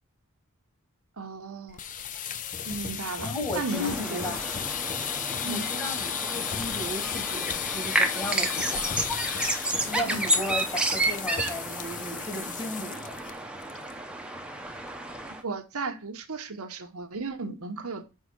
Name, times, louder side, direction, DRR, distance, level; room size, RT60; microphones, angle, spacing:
voice 1, 1.2-1.8 2.6-4.3 5.4-5.7 10.1-10.2 15.4-18.1, right 3 dB, 85° right, 1.0 m, -35 dB
sound 1, 1.7-13.3 13.6-13.9 14.2-14.3 14.7-15.1, left 8 dB, 35° left, 0.5 m, -34 dB
voice 2, 3.0-4.5 5.5-9.0 9.8-13.2, left 1 dB, 20° left, 1.9 m, -35 dB
sound 2, 3.7-15.4, right 1 dB, 5° right, 0.7 m, -31 dB
5.6 x 4.7 x 6.1 m
head